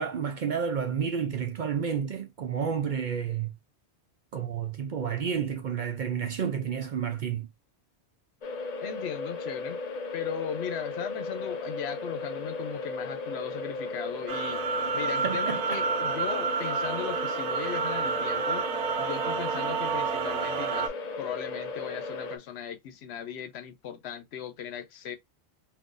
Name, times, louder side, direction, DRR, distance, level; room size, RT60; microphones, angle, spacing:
voice 1, 0.0-3.5 4.3-7.5 15.2-15.8, right 7 dB, 60° right, 0.5 m, -30 dB
sound 1, 8.4-22.4, left 3 dB, 50° left, 0.5 m, -36 dB
voice 2, 8.8-14.6 14.9-18.7 19.0-20.9 21.2-25.2, left 9 dB, 75° left, 0.9 m, -38 dB
sound 2, 14.3-20.9, right 6 dB, 80° right, 0.9 m, -30 dB
3.7 x 2.6 x 2.5 m
omnidirectional pair, 1.1 m